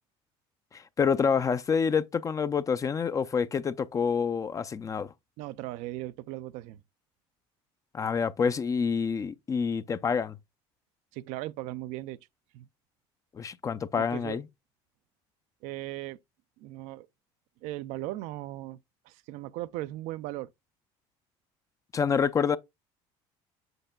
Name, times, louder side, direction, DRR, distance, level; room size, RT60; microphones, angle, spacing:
voice 1, 0.7-5.1 7.9-10.4 13.3-14.4 21.9-22.6, left 6 dB, 25° left, 0.4 m, -27 dB
voice 2, 5.4-6.8 11.1-12.2 12.5-12.7 14.0-14.4 15.6-16.2 16.6-17.1 17.6-18.8 19.1-20.5, right 16 dB, 70° right, 0.4 m, -37 dB
7.8 x 6.4 x 2.2 m
supercardioid pair, 100°, 12 cm